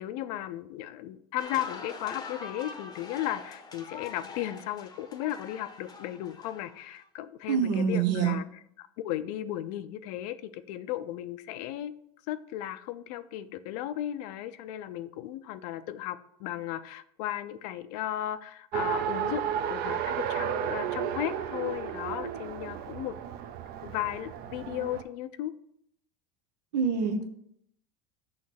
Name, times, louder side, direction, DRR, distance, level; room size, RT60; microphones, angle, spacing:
voice 1, 0.0-8.4 8.8-11.9 12.3-23.2 23.8-25.5, left 13 dB, 70° left, 13 dB, 0.5 m, -35 dB
sound 1, 1.4-7.0, left 4 dB, 20° left, 0.7 m, -43 dB
voice 2, 7.5-8.4 26.7-27.3, right 6 dB, 90° right, 7 dB, 0.9 m, -26 dB
Race car auto racing, 18.7-25.0, right 9 dB, 50° right, 0.6 m, -33 dB
6.4 x 3.1 x 5.9 m, 0.71 s
supercardioid pair, 115°, 20 cm